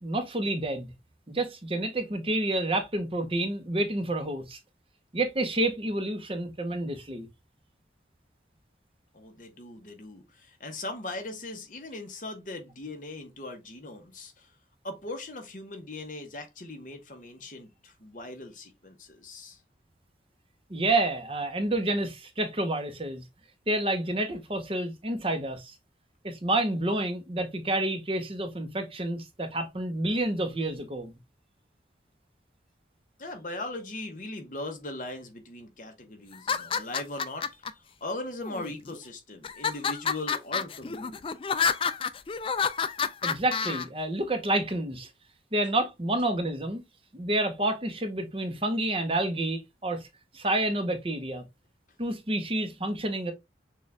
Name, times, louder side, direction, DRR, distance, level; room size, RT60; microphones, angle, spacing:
voice 1, 0.0-0.9 1.3-4.6 5.1-7.3 20.7-23.2 23.7-25.7 26.2-31.2 43.2-45.1 45.5-46.8 47.1-50.1 50.3-51.4 52.0-53.3, right 1 dB, 30° right, 0.8 m, -29 dB
voice 2, 9.1-14.5 14.8-19.6 33.2-41.2, left 2 dB, 45° left, 1.1 m, -39 dB
sound 1, 36.3-37.7 38.4-39.0 39.4-43.8, left 6 dB, 30° left, 0.3 m, -29 dB
6.4 x 2.4 x 3.2 m
head